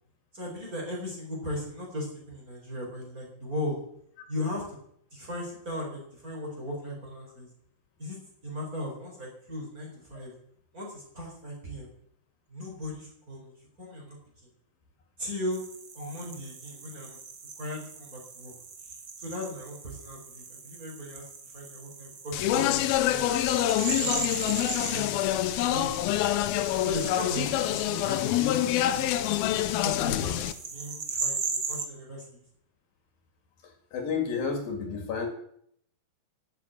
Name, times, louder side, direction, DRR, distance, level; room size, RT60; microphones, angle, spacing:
voice 1, 0.3-3.8 4.3-4.8 5.1-7.5 8.0-8.2 8.4-10.3 10.7-11.9 12.5-14.2 15.2-15.6 15.9-17.2 17.6-18.5 19.2-21.2 21.5-23.2 23.8-25.4 25.6-26.2 26.8-28.5 28.9-29.3 29.8-32.4, left 1 dB, 20° right, -2 dB, 4.7 m, -37 dB
sound 1, 15.5-31.8, right 5 dB, 55° right, 1.2 m, -38 dB
Speech, 22.3-30.5, left 13 dB, 80° left, 2.5 m, -26 dB
voice 2, 33.6-35.3, left 5 dB, 65° left, 4 dB, 3.6 m, -31 dB
12.0 x 8.5 x 8.8 m, 0.69 s
omnidirectional pair, 4.5 m